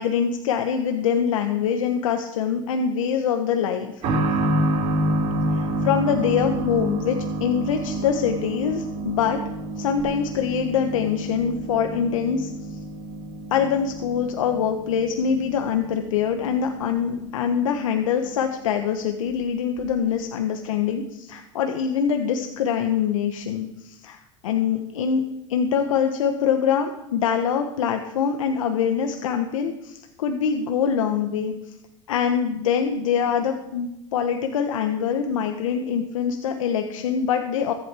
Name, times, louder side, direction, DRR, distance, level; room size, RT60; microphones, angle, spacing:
voice 1, 0.0-3.9 5.5-9.4 9.8-12.8 13.5-25.2 25.5-31.7 32.1-37.7, left 7 dB, 85° left, 6 dB, 1.1 m, -24 dB
sound 1, 4.0-18.4 18.7-18.8 19.8-19.9, right 1 dB, 50° right, 5.6 m, -29 dB
22.5 x 7.9 x 3.5 m, 0.89 s
hypercardioid pair, 105°, 16 cm